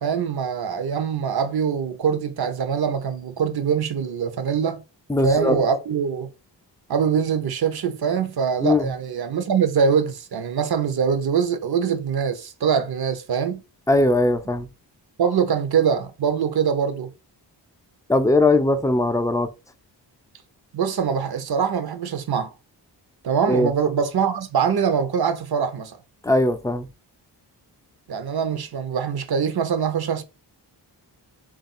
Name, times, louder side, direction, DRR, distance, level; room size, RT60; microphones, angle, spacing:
voice 1, 0.0-4.8 5.2-6.3 6.9-13.6 15.2-17.1 20.7-22.5 23.2-26.0 28.1-30.2, right 7 dB, 60° right, 0.8 m, -23 dB
voice 2, 5.1-5.6 8.6-8.9 13.9-14.7 18.1-19.5 23.5-23.7 26.2-26.9, left 2 dB, 10° left, 0.4 m, -20 dB
3.4 x 2.5 x 4.1 m
cardioid pair, 70°, 43 cm